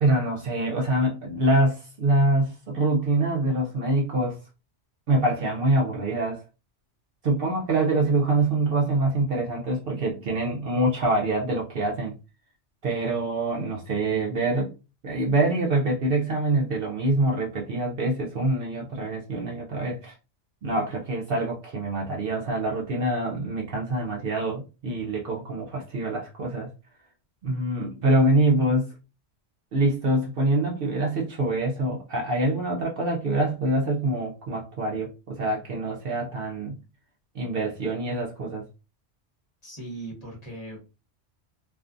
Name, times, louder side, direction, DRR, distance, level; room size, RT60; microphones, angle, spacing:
voice 1, 0.0-4.4 5.1-6.4 7.2-12.2 12.8-14.7 15.0-20.1 20.6-26.7 27.4-28.9 29.7-36.8 37.3-38.6, right 2 dB, 60° right, 0.7 m, -25 dB
voice 2, 39.6-40.8, right 2 dB, 35° left, 1.1 m, -38 dB
2.5 x 2.3 x 2.4 m
omnidirectional pair, 1.2 m